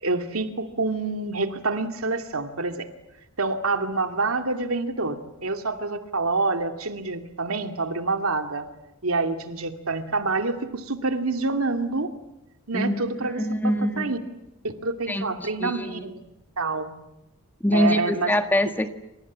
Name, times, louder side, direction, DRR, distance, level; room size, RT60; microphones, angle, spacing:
voice 1, 0.0-2.9 3.4-8.7 9.0-12.1 12.7-14.2 14.6-16.2 16.6-16.9 17.7-18.3, right 3 dB, 75° right, 6 dB, 2.5 m, -27 dB
voice 2, 12.7-14.2 15.1-16.1 17.6-18.9, left 1 dB, 10° left, 7 dB, 1.6 m, -25 dB
28.5 x 27.5 x 7.5 m, 0.92 s
head